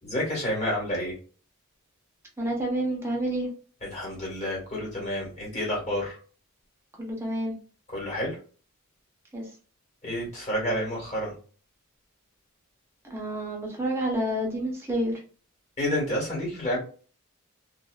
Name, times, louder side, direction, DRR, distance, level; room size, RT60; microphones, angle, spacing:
voice 1, 0.0-1.1 3.8-6.2 7.9-8.4 10.0-11.3 15.8-16.8, equal, 30° left, -4 dB, 1.4 m, -29 dB
voice 2, 2.4-3.5 7.0-7.5 9.3-9.4 13.0-15.2, right 1 dB, 10° right, -2 dB, 0.7 m, -29 dB
2.6 x 2.5 x 2.2 m, 0.40 s
head